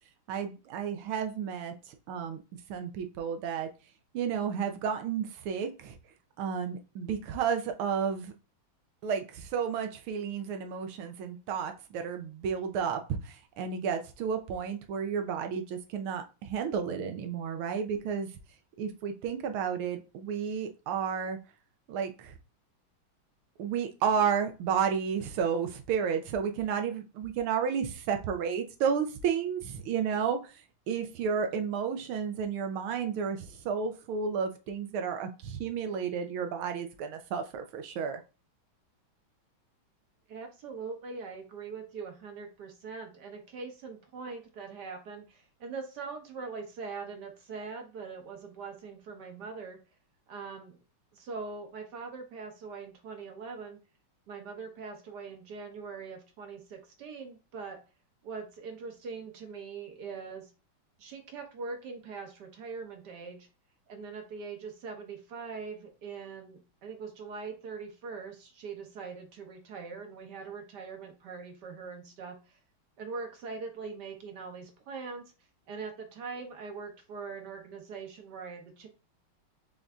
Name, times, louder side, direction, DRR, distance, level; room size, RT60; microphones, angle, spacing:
voice 1, 0.3-2.4 2.7-3.7 4.1-6.0 6.4-8.3 9.0-18.3 18.8-21.4 21.9-22.4 23.6-30.6 30.9-38.2, right 7 dB, 85° right, 1.6 m, -32 dB
voice 2, 40.3-49.8 50.3-50.8 51.1-53.8 54.3-57.8 58.2-60.5 61.0-63.5 63.9-72.6 73.0-75.2 75.7-78.9, right 4 dB, 60° right, 1.3 m, -42 dB
5.6 x 2.6 x 3.5 m
omnidirectional pair, 2.3 m